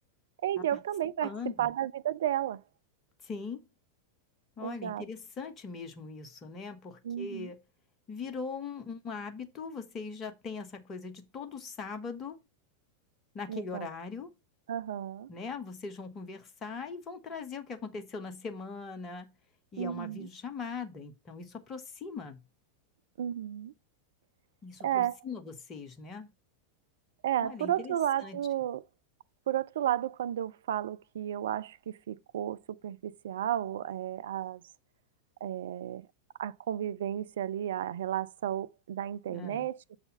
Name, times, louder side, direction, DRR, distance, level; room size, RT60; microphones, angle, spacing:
voice 1, 0.4-1.3 1.6-2.6 4.6-5.0 7.0-7.5 13.5-13.9 14.7-15.3 19.8-20.3 23.2-23.7 24.8-25.2 27.2-28.8 29.5-34.6 35.4-36.1 36.4-40.0, right 11 dB, 60° right, 0.4 m, -33 dB
voice 2, 1.2-1.7 3.2-3.7 4.6-7.6 8.1-12.4 13.3-14.3 15.3-19.3 19.7-22.4 24.6-26.3 27.4-27.9 28.2-28.4 39.3-39.7, left 5 dB, 25° left, 1.1 m, -40 dB
6.8 x 4.1 x 5.2 m
figure-of-eight pair, 90°, 0 cm